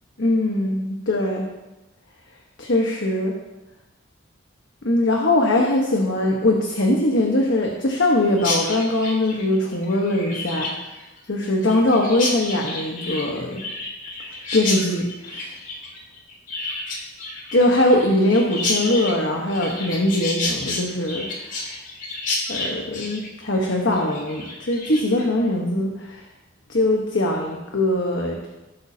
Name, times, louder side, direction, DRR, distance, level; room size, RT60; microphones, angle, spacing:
voice 1, 0.2-1.5 2.6-3.3 4.8-10.9 11.3-13.6 14.5-15.5 17.5-21.3 22.5-26.2 26.7-28.5, left 1 dB, 65° left, 0 dB, 1.2 m, -21 dB
Chirp tweet, 8.4-25.2, left 2 dB, 40° left, 2.0 m, -30 dB
17.0 x 8.4 x 2.8 m, 1.0 s
head